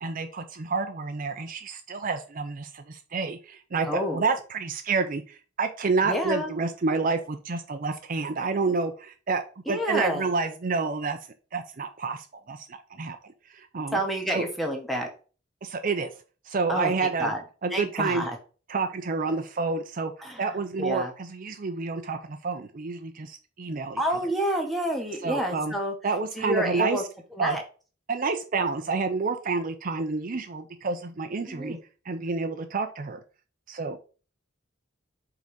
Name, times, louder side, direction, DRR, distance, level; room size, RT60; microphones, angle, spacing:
voice 1, 0.0-11.2 11.5-14.0 14.3-14.5 15.6-16.1 16.5-17.3 17.6-18.2 18.7-20.1 20.4-24.0 25.2-25.7 26.0-27.0 27.4-27.6 28.1-31.8 32.1-33.2 33.7-34.0, right 4 dB, 45° right, 7 dB, 0.6 m, -29 dB
voice 2, 3.8-4.2 6.0-6.5 9.7-10.2 13.9-15.1 16.7-17.4 17.7-18.3 20.2-20.4 20.8-21.1 24.0-25.9 26.4-27.0 27.4-27.6 31.5-31.8, equal, ahead, 2 dB, 1.2 m, -28 dB
5.2 x 3.9 x 5.1 m, 0.36 s
head